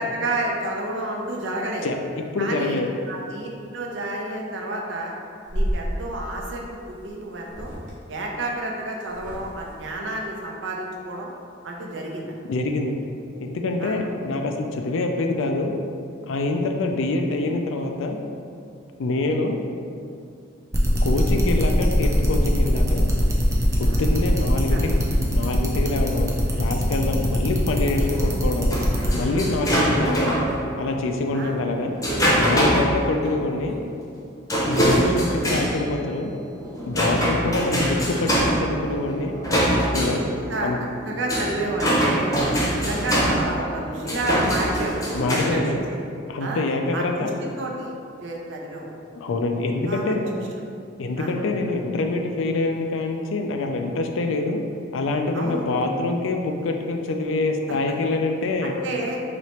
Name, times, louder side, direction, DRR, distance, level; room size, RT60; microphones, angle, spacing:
voice 1, 0.0-1.9 2.4-2.8 3.1-3.5 3.7-5.1 5.5-7.7 8.1-11.3 11.6-12.3 13.8-14.0 23.8-24.1 24.7-24.8 31.3-31.6 34.8-34.9 40.1-40.7 41.1-42.3 42.7-46.0 46.4-46.6 46.9-47.3 47.6-47.9 48.2-48.9 49.9-50.4 51.2-51.3 55.3-55.6 58.6-59.2, right 1 dB, 70° right, -1 dB, 0.6 m, -30 dB
voice 2, 2.3-2.9 12.5-13.1 13.4-15.7 16.2-18.2 19.0-19.6 21.0-23.1 23.8-25.0 25.3-28.7 29.1-30.4 30.8-31.9 32.4-33.8 34.6-36.3 36.8-39.4 39.7-40.2 40.6-40.8 45.1-45.7 46.3-47.3 49.2-50.3 51.0-54.6 54.9-58.7, left 2 dB, 85° left, 4 dB, 0.4 m, -25 dB
sound 1, 5.5-5.9 6.9-7.1 7.4-7.9 9.0-9.7, equal, 40° right, 1.0 m, -29 dB
sound 2, 20.7-29.1, equal, 15° right, 0.4 m, -24 dB
sound 3, 27.6-30.6 31.4-32.9 33.2-33.4 33.7-33.8 34.5-45.5, equal, 15° left, 0.7 m, -24 dB
3.2 x 2.9 x 4.3 m, 2.4 s
head